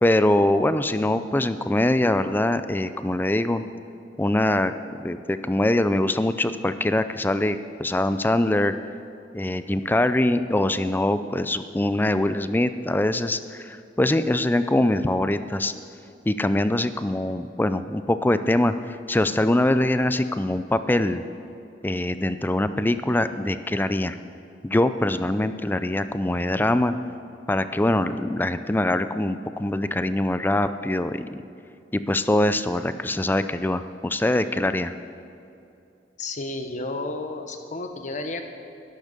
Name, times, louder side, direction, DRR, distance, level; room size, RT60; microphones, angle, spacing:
voice 1, 0.0-3.6 4.2-8.7 9.3-15.7 16.3-21.2 21.8-24.2 24.6-26.9 27.5-31.4 31.9-34.9, left 1 dB, 10° left, 11 dB, 0.4 m, -23 dB
voice 2, 36.2-38.4, left 2 dB, 45° left, 6 dB, 1.0 m, -32 dB
12.0 x 11.0 x 6.6 m, 2.6 s
head